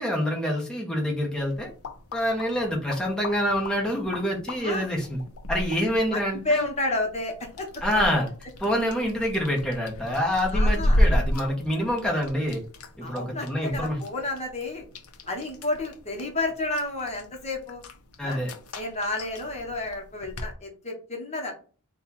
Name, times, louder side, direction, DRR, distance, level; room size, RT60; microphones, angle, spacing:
voice 1, 0.0-1.7 2.1-5.2 5.5-6.7 7.8-8.3 8.6-12.6 13.0-14.0 18.2-18.5, equal, 5° left, -2 dB, 0.9 m, -26 dB
sound 1, 1.4-20.5, equal, 75° left, 0.6 m, -32 dB
voice 2, 6.1-7.7 10.5-11.0 13.0-14.9 15.3-17.8 18.2-18.4 18.7-21.5, left 2 dB, 30° left, 1 dB, 1.0 m, -31 dB
4.2 x 2.3 x 4.1 m, 0.38 s
head